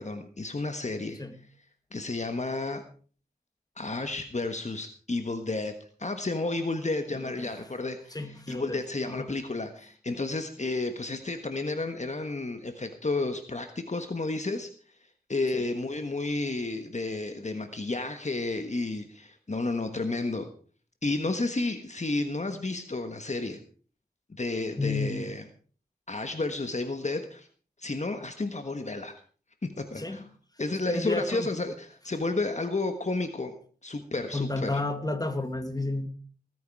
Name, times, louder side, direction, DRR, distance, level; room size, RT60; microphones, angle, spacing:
voice 1, 0.0-1.2 1.9-2.8 3.8-5.7 6.0-14.7 15.3-20.5 21.0-23.6 24.3-25.4 26.1-27.5 27.8-29.2 29.6-30.2 30.6-33.5 33.8-34.7, left 2 dB, 45° left, 1.5 m, -31 dB
voice 2, 7.1-7.5 8.1-8.8 9.1-9.3 15.5-15.6 24.8-25.3 30.0-30.2 30.8-31.5 34.3-36.1, left 2 dB, 25° left, 2.0 m, -32 dB
19.5 x 9.5 x 4.8 m
wide cardioid pair, 70°, 16 cm